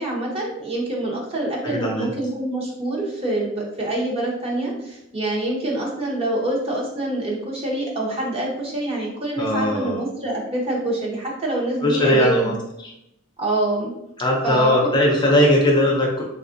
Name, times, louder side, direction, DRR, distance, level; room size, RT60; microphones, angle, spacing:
voice 1, 0.0-12.6 13.4-13.9 14.4-14.7, right 2 dB, 30° right, -3 dB, 0.8 m, -26 dB
voice 2, 1.6-2.1 9.4-10.0 11.8-12.5 14.2-16.2, left 1 dB, 20° left, -2 dB, 0.5 m, -19 dB
3.4 x 2.4 x 2.5 m, 0.85 s
head